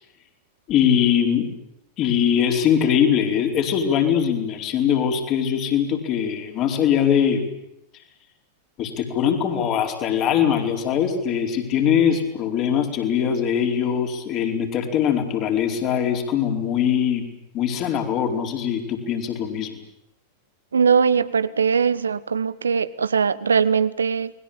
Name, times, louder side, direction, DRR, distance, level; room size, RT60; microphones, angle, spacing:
voice 1, 0.7-1.5 2.0-7.5 8.8-17.2 17.5-19.8, left 8 dB, 35° left, 4 dB, 4.6 m, -22 dB
voice 2, 20.7-24.3, right 6 dB, 70° right, 17 dB, 1.1 m, -20 dB
29.5 x 21.5 x 8.8 m, 0.81 s
figure-of-eight pair, 90°, 0 cm